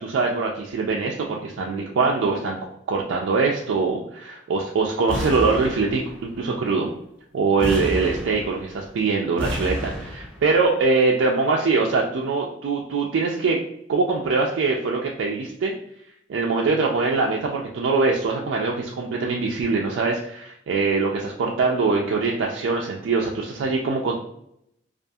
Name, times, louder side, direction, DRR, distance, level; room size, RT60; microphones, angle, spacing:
voice 1, 0.0-2.6 2.9-6.9 7.3-13.6 13.9-15.7 16.3-24.1, right 4 dB, 80° right, -1 dB, 0.3 m, -23 dB
sound 1, 5.1-6.3 7.6-8.9 9.4-10.5, equal, 5° left, 0.6 m, -30 dB
2.4 x 2.3 x 2.6 m, 0.75 s
head